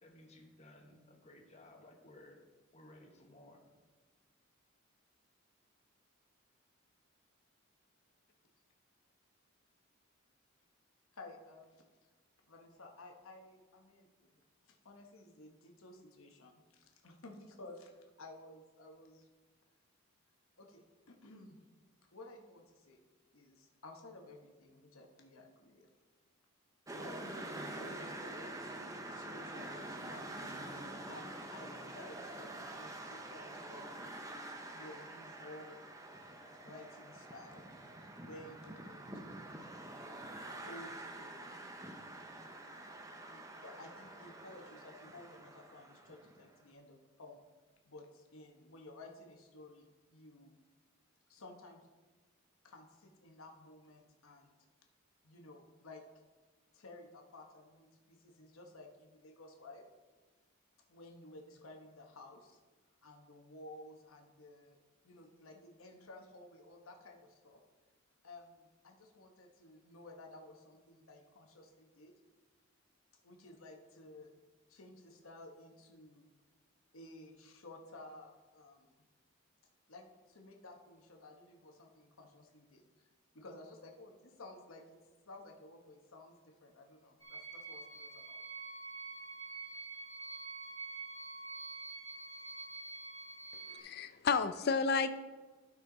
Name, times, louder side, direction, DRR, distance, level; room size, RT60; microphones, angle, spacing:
voice 1, 0.0-2.4 2.7-3.6, left 1 dB, 30° left, 1 dB, 1.1 m, -58 dB
voice 2, 11.1-11.8 12.5-14.3 14.6-17.9 18.2-19.3 20.6-21.6 22.1-23.0 23.3-25.9 27.0-28.5 29.1-30.6 31.1-34.1 34.7-35.8 36.6-37.6 38.2-39.1 40.5-41.7 43.3-47.4 47.8-50.5 51.3-51.8 52.6-54.5 55.2-56.0 56.7-59.8 60.9-62.6 63.0-64.8 65.0-67.6 68.2-72.1 73.2-74.3 74.7-76.3 76.9-79.0 79.9-83.1 83.3-85.0 85.3-88.4, left 2 dB, 75° left, 2 dB, 1.1 m, -54 dB
sound 1, 26.9-46.4, right 1 dB, 15° right, 0.7 m, -47 dB
sound 2, 87.2-93.8, right 3 dB, 15° left, 1.4 m, -46 dB
voice 3, 93.7-95.2, left 5 dB, 50° left, 11 dB, 0.4 m, -32 dB
12.0 x 5.6 x 3.9 m, 1.4 s
head